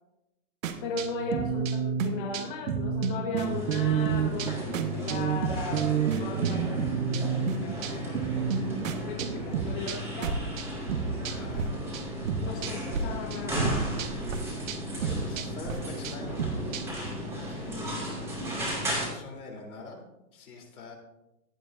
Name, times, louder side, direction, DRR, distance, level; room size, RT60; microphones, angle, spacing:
sound 1, 0.6-11.7 11.9-13.0 13.3-17.1, right 6 dB, 60° right, 1.4 m, -30 dB
voice 1, 0.8-8.4 9.0-10.4 11.5-11.7 12.4-13.6, left 4 dB, 35° left, 0 dB, 1.4 m, -37 dB
sound 2, 3.4-19.1, equal, 5° right, 2.3 m, -35 dB
voice 2, 11.2-11.7 14.8-16.7 17.3-18.0 18.7-20.0 20.3-21.0, left 3 dB, 70° left, 1 dB, 3.6 m, -44 dB
16.0 x 11.5 x 2.6 m, 0.92 s
hypercardioid pair, 160°, 44 cm